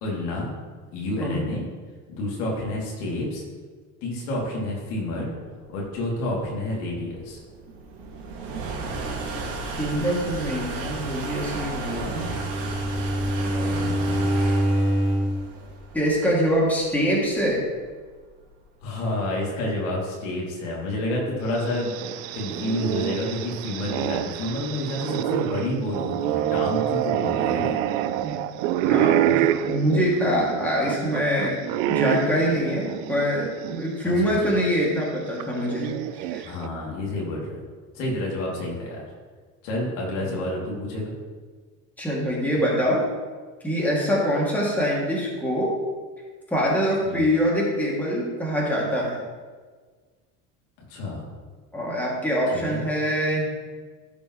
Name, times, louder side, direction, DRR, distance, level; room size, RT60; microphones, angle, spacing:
voice 1, 0.0-0.5 0.9-1.6 2.1-3.4 4.0-5.3 5.7-7.4 13.7-14.3 18.8-22.0 22.3-27.8 34.0-34.3 36.4-37.6 37.9-39.0 39.6-41.1 47.1-47.3 50.9-51.2 52.5-52.8, left 1 dB, 85° left, -3 dB, 2.7 m, -29 dB
sound 1, 5.4-18.8, right 3 dB, 70° right, 2.2 m, -34 dB
voice 2, 9.8-12.3 13.2-13.8 15.9-17.6 28.2-28.4 28.8-31.5 31.9-35.9 36.2-36.5 40.1-40.4 42.0-43.0 43.6-45.7 46.5-49.2 51.7-53.4, equal, 5° left, -5 dB, 2.4 m, -24 dB
Bowed string instrument, 11.8-15.4, equal, 25° left, 2.4 m, -25 dB
sound 2, 21.5-33.8 34.2-34.3 35.4-36.7, right 11 dB, 90° right, 0.6 m, -27 dB
13.0 x 5.5 x 3.1 m, 1.5 s
cardioid pair, 125°, 38 cm